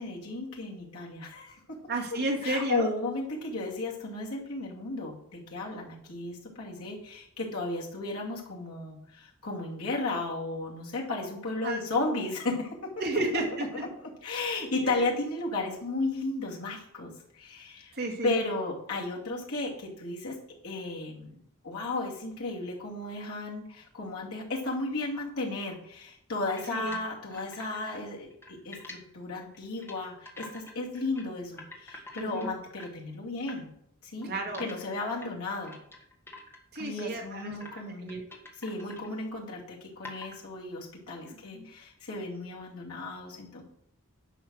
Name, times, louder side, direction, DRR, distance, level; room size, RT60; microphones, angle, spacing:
voice 1, 0.0-1.6 2.4-12.7 13.3-13.4 14.2-17.9 18.2-20.3 20.6-21.3 21.6-28.3 28.6-33.7 34.0-34.3 34.6-35.7 36.8-38.1 38.6-43.6, left 2 dB, 75° left, -2 dB, 2.7 m, -34 dB
voice 2, 1.9-2.9 11.6-11.8 13.0-13.7 14.8-15.1 17.9-18.3 26.7-27.0 32.1-32.5 34.2-34.7 36.7-37.6 38.0-38.2 41.5-41.7, right 2 dB, 45° right, 0 dB, 2.2 m, -32 dB
sound 1, 26.5-28.0 28.3-29.0 29.5-30.0 30.2-31.2 31.5-33.0 33.5-33.6 34.2-37.1 37.3-37.8 38.1-39.1 39.5-39.6 40.0-40.4, left 2 dB, 10° left, 1.5 m, -46 dB
10.0 x 5.7 x 6.3 m, 0.72 s
head